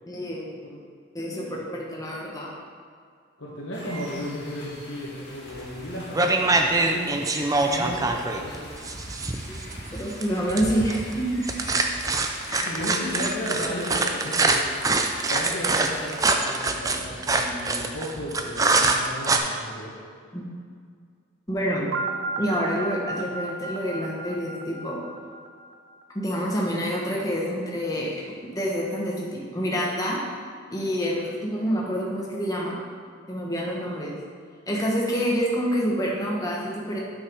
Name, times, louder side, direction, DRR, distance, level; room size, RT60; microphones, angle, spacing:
voice 1, 0.1-0.4 1.1-2.5 9.9-11.5 12.5-12.7 20.3-20.5 21.5-21.8 22.4-25.0 26.1-28.2 28.5-30.2 30.7-32.8 33.3-34.1 34.7-37.0, equal, 20° left, -3 dB, 1.4 m, -27 dB
voice 2, 1.3-1.7 3.4-8.8 12.6-14.7 15.3-20.0, equal, 80° left, -6 dB, 1.5 m, -34 dB
sound 1, 3.7-16.4, left 1 dB, 60° left, 2.2 m, -44 dB
sound 2, 5.6-5.8 6.1-19.4, right 3 dB, 15° right, 0.5 m, -24 dB
sound 3, 21.9-25.9, right 2 dB, 70° right, 0.7 m, -33 dB
8.4 x 5.8 x 4.8 m, 2.1 s
head